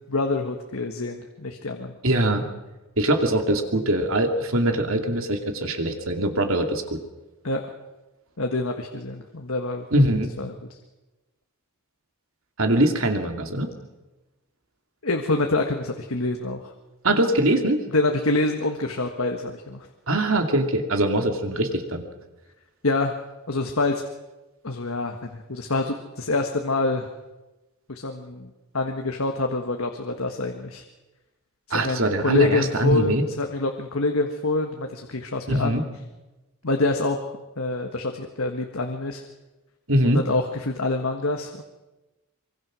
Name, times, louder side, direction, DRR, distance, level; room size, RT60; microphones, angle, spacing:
voice 1, 0.0-1.9 7.4-7.7 8.4-10.0 10.4-10.5 15.0-16.7 17.9-19.9 22.8-23.1 23.5-24.0 24.6-27.1 27.9-30.8 31.7-35.8 36.6-37.2 37.6-39.2 40.0-41.6, left 2 dB, 70° left, 4 dB, 1.6 m, -26 dB
voice 2, 2.0-2.5 3.0-7.0 9.9-10.3 12.6-13.7 17.0-17.8 20.1-22.0 31.7-33.2 35.5-35.8 39.9-40.2, right 1 dB, 65° right, 5 dB, 2.7 m, -22 dB
24.5 x 24.0 x 6.3 m, 1.1 s
head